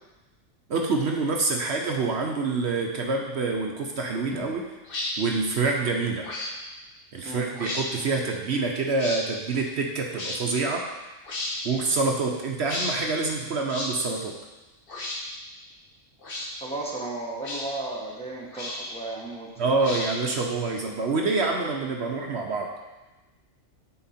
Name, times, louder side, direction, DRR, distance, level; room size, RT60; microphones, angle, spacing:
voice 1, 0.7-4.7 5.2-6.3 7.1-10.9 11.6-14.4 19.6-22.7, right 3 dB, 60° right, 1 dB, 1.0 m, -26 dB
sound 1, 4.9-5.1 6.2-6.5 7.5-7.9 9.0-9.2 10.1-10.4 11.3-11.6 12.6-13.0 13.7-13.9 14.9-15.2 16.2-16.5 17.4-17.7 18.5-19.0 19.8-20.3, left 2 dB, 45° left, 1.2 m, -33 dB
voice 2, 16.6-19.7, right 2 dB, 5° left, -3 dB, 0.9 m, -34 dB
9.7 x 4.4 x 4.3 m, 1.1 s
omnidirectional pair, 1.3 m